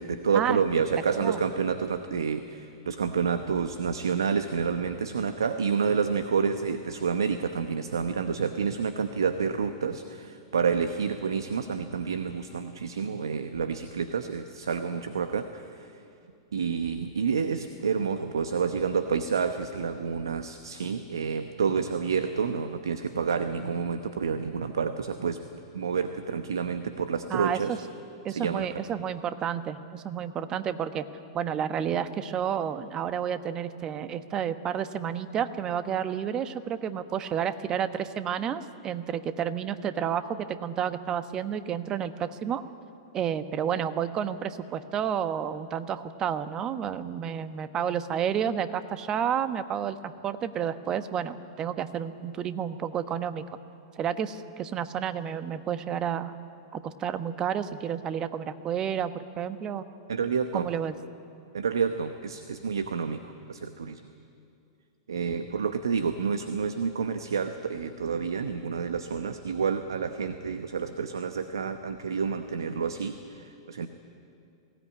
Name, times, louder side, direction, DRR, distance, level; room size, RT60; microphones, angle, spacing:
voice 1, 0.0-16.0 16.5-25.4 25.7-27.8 28.3-28.7 60.1-60.7 61.5-63.2 63.5-64.0 65.1-73.9, right 6 dB, 80° right, 9 dB, 1.0 m, -29 dB
voice 2, 27.3-27.8 28.2-31.0 31.3-42.6 43.1-53.4 54.0-56.3 56.7-59.9 60.5-60.9, right 8 dB, 30° right, 11 dB, 1.2 m, -30 dB
21.0 x 17.0 x 9.7 m, 2.5 s
hypercardioid pair, 105°, 2 cm